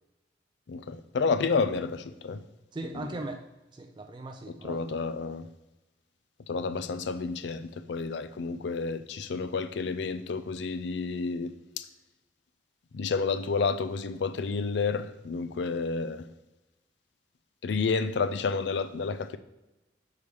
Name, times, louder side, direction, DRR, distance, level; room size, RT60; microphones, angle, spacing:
voice 1, 0.7-2.4 4.6-5.5 6.5-11.5 11.8-11.9 12.9-16.3 17.6-19.4, left 4 dB, 70° left, 0.4 m, -30 dB
voice 2, 2.7-3.4 3.7-5.0, right 2 dB, 25° right, 0.3 m, -39 dB
6.6 x 4.7 x 3.5 m
head